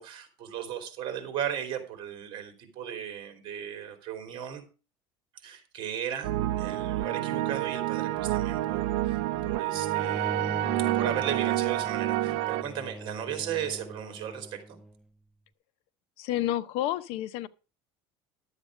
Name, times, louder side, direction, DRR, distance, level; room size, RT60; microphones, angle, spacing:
voice 1, 0.0-4.6 5.4-14.8, right 9 dB, 45° right, 3.2 m, -36 dB
sound 1, 6.2-12.6, right 16 dB, 90° right, 0.8 m, -29 dB
Bowed string instrument, 9.7-14.9, right 1 dB, ahead, 0.4 m, -39 dB
voice 2, 16.2-17.5, left 13 dB, 65° left, 0.7 m, -30 dB
11.5 x 8.1 x 4.9 m
cardioid pair, 155°, 11 cm